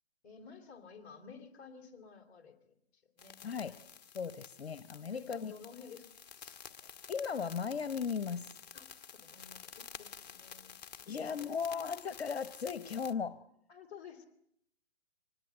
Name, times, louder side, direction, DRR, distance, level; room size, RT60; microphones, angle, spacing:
voice 1, 0.2-3.4 4.9-6.1 6.3-6.6 8.7-10.8 11.0-11.6 13.7-14.3, left 6 dB, 25° left, 2 dB, 2.9 m, -53 dB
sound 1, 3.2-13.1, left 7 dB, 40° left, 1.3 m, -51 dB
voice 2, 3.4-3.7 4.1-5.5 7.1-8.6 11.1-13.4, left 6 dB, 75° left, 14 dB, 1.0 m, -37 dB
25.0 x 20.0 x 7.9 m, 0.72 s
figure-of-eight pair, 140°, 32 cm